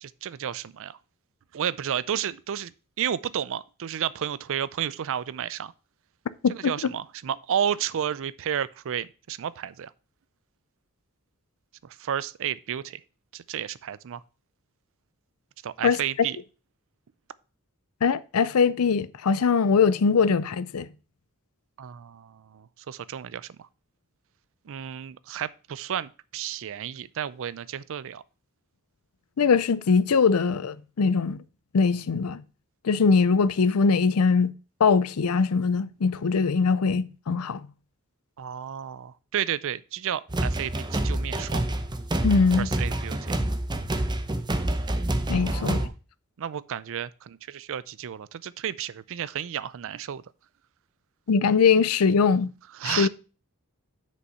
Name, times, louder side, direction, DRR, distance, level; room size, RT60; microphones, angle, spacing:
voice 1, 0.0-1.0 1.5-2.7 3.0-5.7 6.5-9.9 11.8-13.0 13.3-14.2 15.6-16.4 21.8-23.7 24.7-28.2 38.4-41.6 42.6-43.4 45.3-45.9 46.4-50.2 52.7-53.1, right 9 dB, 60° right, 0.4 m, -32 dB
voice 2, 6.4-6.9 15.8-16.0 18.0-20.9 29.4-31.4 31.7-32.4 32.8-34.5 34.8-37.6 42.2-42.7 45.3-45.9 51.3-52.5 52.8-53.1, left 5 dB, 80° left, 0.5 m, -22 dB
sound 1, 40.3-45.9, right 1 dB, 20° right, 0.7 m, -27 dB
6.6 x 5.3 x 5.5 m
head